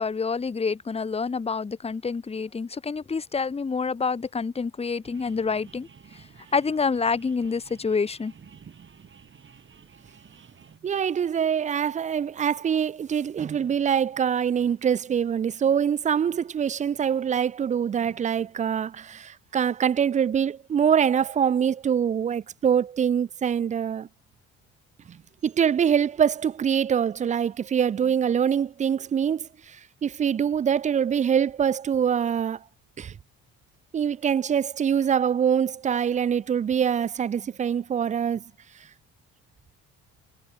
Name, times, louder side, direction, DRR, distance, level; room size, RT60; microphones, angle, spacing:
voice 1, 0.0-5.9 6.1-6.2 6.5-8.3, left 5 dB, 20° left, 1.0 m, -27 dB
sound 1, 5.0-10.8, right 6 dB, 40° right, 4.4 m, -52 dB
voice 2, 10.8-24.1 25.1-32.6 33.0-33.1 33.9-38.4, right 8 dB, 25° right, 0.3 m, -24 dB
cardioid pair, 90°, 30 cm